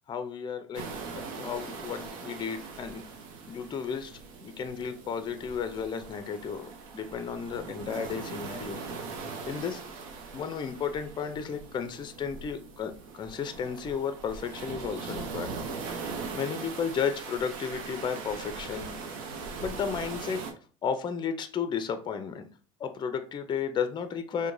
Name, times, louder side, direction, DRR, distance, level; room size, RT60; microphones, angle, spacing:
voice 1, 0.1-0.9 1.1-3.0 3.5-8.8 9.5-9.8 10.3-15.5 16.3-18.9 19.6-20.4 20.8-22.5 22.8-24.5, left 6 dB, 25° left, 9 dB, 0.4 m, -33 dB
sound 1, 0.7-20.5, right 4 dB, 90° right, 0.7 m, -40 dB
4.5 x 2.2 x 2.5 m, 0.40 s
supercardioid pair, 95°, 17 cm